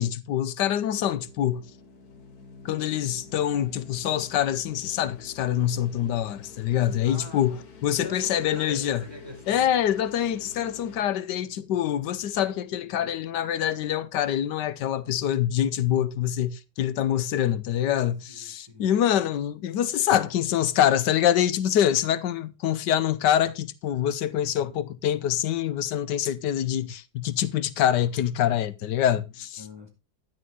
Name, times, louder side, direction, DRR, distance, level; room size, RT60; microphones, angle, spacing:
voice 1, 0.0-1.7 2.6-9.0 9.5-29.6, left 10 dB, 85° left, 1.4 m, -25 dB
sound 1, 0.9-11.0, left 5 dB, 65° left, 2.0 m, -48 dB
voice 2, 7.0-9.8 18.3-18.9 29.2-29.3 29.6-29.9, left 2 dB, 15° right, 4.9 m, -44 dB
11.0 x 11.0 x 3.7 m
omnidirectional pair, 1.8 m